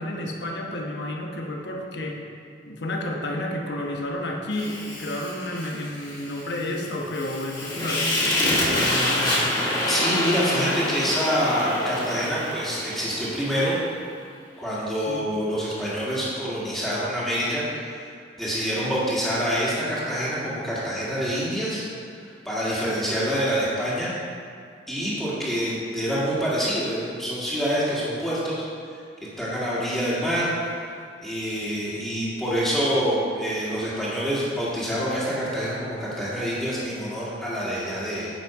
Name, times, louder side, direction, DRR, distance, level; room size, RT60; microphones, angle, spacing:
voice 1, 0.0-2.2 2.7-9.6 15.1-15.3, left 1 dB, 65° left, 1 dB, 1.1 m, -31 dB
Fire, 4.5-13.7, left 1 dB, 25° left, 2.0 m, -27 dB
voice 2, 9.9-13.8 14.6-18.0 18.4-21.9 22.2-24.1 24.9-28.6 28.9-29.0 29.4-30.9 31.2-38.3, equal, ahead, -10 dB, 1.9 m, -26 dB
8.9 x 5.8 x 5.0 m, 2.2 s
head